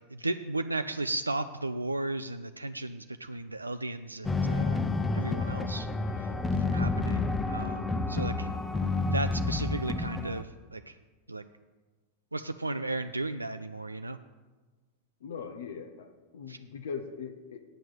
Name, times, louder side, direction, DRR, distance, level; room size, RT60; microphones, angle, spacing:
voice 1, 0.2-4.8 5.1-5.9 6.6-8.5 9.1-10.4 10.7-10.9 11.3-11.4 12.3-14.2 16.5-16.6, right 2 dB, 80° right, 9 dB, 0.3 m, -34 dB
sound 1, 4.2-10.4, left 3 dB, 10° left, 0.6 m, -29 dB
voice 2, 15.2-16.1 16.3-17.6, left 6 dB, 60° left, 6 dB, 0.7 m, -40 dB
9.0 x 6.2 x 7.5 m, 1.3 s
figure-of-eight pair, 90°, 0 cm